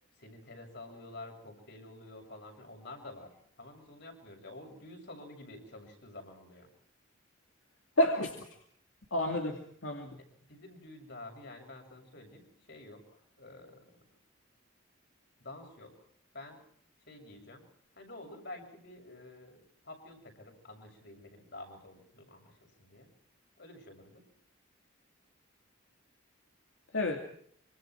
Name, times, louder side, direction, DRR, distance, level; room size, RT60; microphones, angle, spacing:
voice 1, 0.2-6.7 10.5-13.0 13.4-13.9 15.4-15.9 16.3-16.6 17.1-17.6 18.0-23.1 23.6-24.2, left 2 dB, 55° left, 3 dB, 7.1 m, -49 dB
voice 2, 8.0-8.5 9.1-10.2 26.9-27.2, left 1 dB, 75° left, 3 dB, 2.5 m, -30 dB
26.0 x 25.5 x 4.7 m, 0.62 s
head